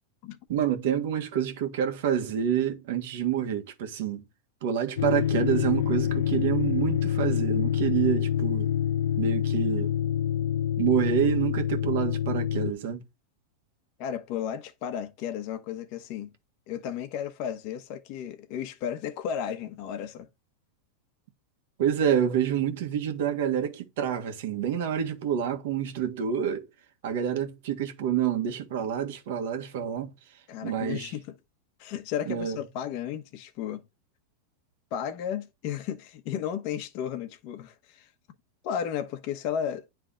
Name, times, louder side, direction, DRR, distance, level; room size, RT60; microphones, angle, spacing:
voice 1, 0.5-4.2 4.6-8.7 9.2-9.9 10.8-13.0 21.8-26.7 27.0-30.1 30.6-31.1 32.3-32.6, right 9 dB, 65° right, 1.4 m, -27 dB
sound 1, 5.0-12.7, left 10 dB, 80° left, 0.3 m, -26 dB
voice 2, 14.0-16.3 16.7-20.3 30.5-31.3 31.8-33.8 34.9-38.1 38.6-39.9, left 9 dB, 45° left, 1.0 m, -34 dB
9.9 x 3.4 x 3.8 m
supercardioid pair, 155°, 0 cm